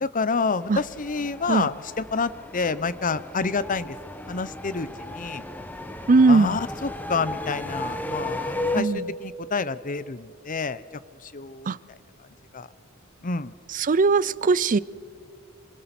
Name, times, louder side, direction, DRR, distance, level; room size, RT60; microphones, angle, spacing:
voice 1, 0.0-4.0 4.3-5.4 6.3-10.8 11.2-12.0 12.5-12.7 13.2-13.5, left 4 dB, 40° left, 0.8 m, -28 dB
sound 1, 0.6-8.8, left 2 dB, 10° left, 1.3 m, -35 dB
voice 2, 6.1-6.6 8.7-9.0 11.7-11.8 13.7-14.8, right 3 dB, 40° right, 0.5 m, -19 dB
27.5 x 26.0 x 6.0 m
head